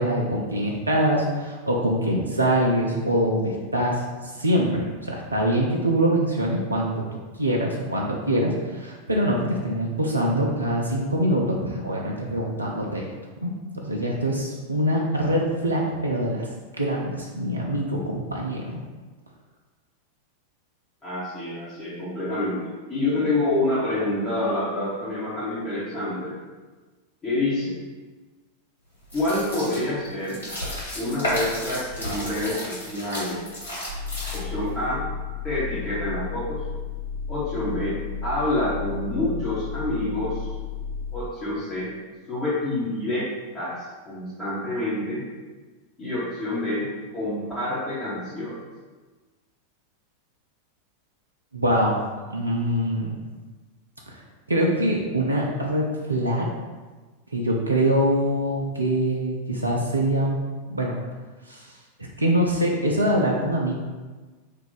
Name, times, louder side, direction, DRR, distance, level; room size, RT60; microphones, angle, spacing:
voice 1, 0.0-4.7 5.0-7.0 7.3-13.1 13.4-13.5 13.8-16.5 16.8-18.8 51.5-52.0 52.3-53.2 54.1-54.2 54.5-56.5 57.3-60.4 60.7-60.9 61.5-61.7 62.2-63.7, right 1 dB, 80° right, -1 dB, 0.4 m, -24 dB
voice 2, 21.0-26.4 27.2-27.8 29.1-30.4 30.9-33.4 34.3-35.0 35.4-36.6 37.3-40.5 41.1-41.9 42.3-45.2 46.0-46.9 47.1-48.6, left 1 dB, 20° left, -11 dB, 1.0 m, -27 dB
sound 1, 29.0-34.7, equal, 75° left, 1.2 m, -32 dB
sound 2, 33.9-41.2, left 6 dB, 35° right, 0.8 m, -33 dB
2.6 x 2.3 x 3.9 m, 1.3 s
figure-of-eight pair, 90°, 0 cm